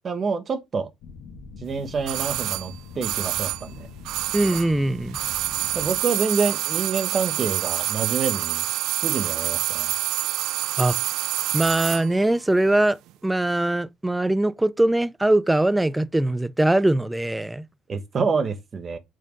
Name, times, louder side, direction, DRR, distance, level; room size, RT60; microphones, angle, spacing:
voice 1, 0.0-0.9 1.6-3.9 5.7-8.7 9.0-9.9 17.9-19.0, right 5 dB, 30° right, 1.2 m, -27 dB
sound 1, 1.0-6.0, left 5 dB, 75° left, 1.6 m, -42 dB
sound 2, 2.1-4.8 5.1-12.1 12.3-12.4, right 15 dB, 70° right, 0.3 m, -27 dB
voice 2, 4.3-5.2 10.8-11.0 11.5-13.0 13.2-17.6, right 1 dB, 5° right, 0.4 m, -21 dB
6.3 x 4.3 x 5.2 m
cardioid pair, 135°, 0 cm